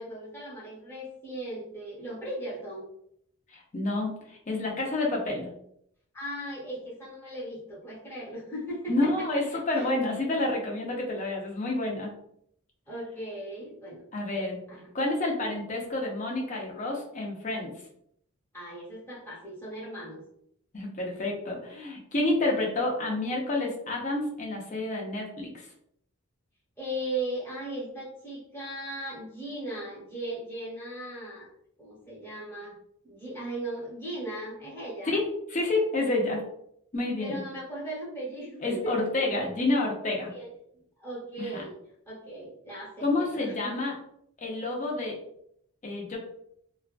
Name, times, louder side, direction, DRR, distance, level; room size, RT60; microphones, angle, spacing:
voice 1, 0.0-2.9 6.1-9.9 12.9-14.0 14.7-14.9 18.5-20.2 26.8-31.5 31.8-32.8 33.0-35.2 37.2-39.4 40.3-41.8 42.1-43.8, right 1 dB, 10° left, -7 dB, 0.9 m, -38 dB
voice 2, 3.5-5.5 8.9-12.1 14.1-14.6 14.9-17.7 20.7-25.7 35.0-35.2 35.5-36.4 36.9-37.4 38.6-40.3 41.4-41.6 43.0-43.9 44.4-45.2 45.8-46.2, left 2 dB, 35° left, -1 dB, 0.5 m, -29 dB
2.4 x 2.2 x 2.4 m, 0.71 s
head